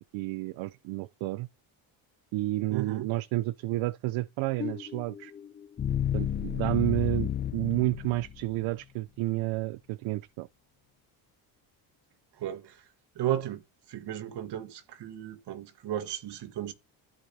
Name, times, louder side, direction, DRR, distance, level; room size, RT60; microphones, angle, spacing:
voice 1, 0.1-1.5 2.3-5.3 6.1-10.5, right 18 dB, 75° right, 0.5 m, -30 dB
voice 2, 2.7-3.1 12.4-12.8 13.1-13.6 13.9-16.7, right 12 dB, 60° right, 1.4 m, -34 dB
sound 1, 4.6-8.7, left 9 dB, 25° left, 0.5 m, -32 dB
14.0 x 5.0 x 2.7 m
cardioid pair, 120°, 47 cm